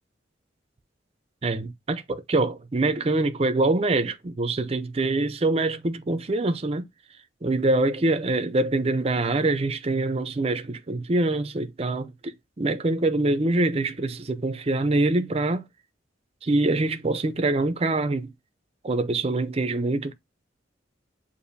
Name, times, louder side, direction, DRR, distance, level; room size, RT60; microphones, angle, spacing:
voice 1, 1.4-6.9 7.4-15.7 16.4-18.3 18.8-20.1, right 2 dB, 30° right, 0.5 m, -24 dB
6.7 x 2.6 x 2.6 m
head